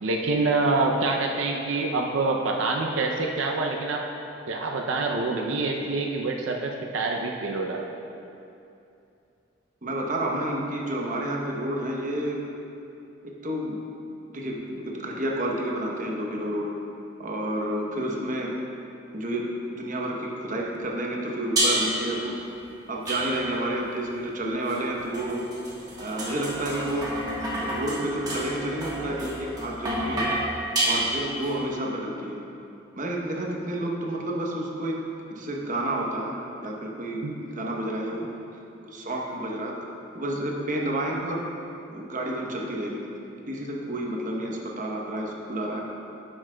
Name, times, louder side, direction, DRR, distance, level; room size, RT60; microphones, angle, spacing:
voice 1, 0.0-4.0 4.5-7.8 37.2-37.3, right 3 dB, 85° right, 1 dB, 0.5 m, -26 dB
voice 2, 9.8-12.5 13.4-13.8 14.3-16.7 17.2-18.6 19.1-22.4 22.9-25.4 26.0-27.1 27.6-30.4 30.8-32.4 33.0-35.0 35.3-38.3 38.8-39.8 40.1-41.5 41.9-43.0 43.5-45.9, right 1 dB, 40° right, -1 dB, 0.9 m, -30 dB
sound 1, 21.6-22.1 23.1-23.7 24.7-31.5, right 1 dB, 20° right, 1.2 m, -29 dB
9.8 x 7.4 x 2.2 m, 2.7 s
head